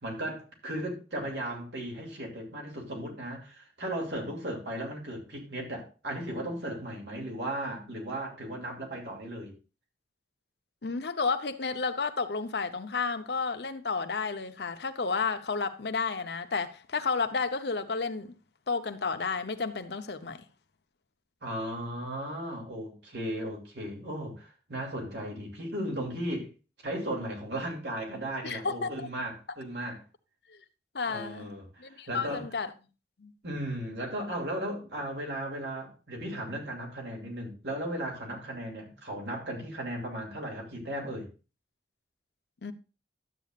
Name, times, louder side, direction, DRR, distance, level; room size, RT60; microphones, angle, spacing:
voice 1, 0.0-9.6 21.4-26.5 26.8-30.0 31.1-32.5 33.4-41.3, right 1 dB, 75° right, 2.7 m, -36 dB
voice 2, 10.8-18.4 18.7-20.4 28.4-29.1 30.5-30.6 30.9-31.5 31.8-32.7 33.2-33.3 42.6-42.7, left 4 dB, 70° left, 0.8 m, -31 dB
12.0 x 8.3 x 2.4 m
head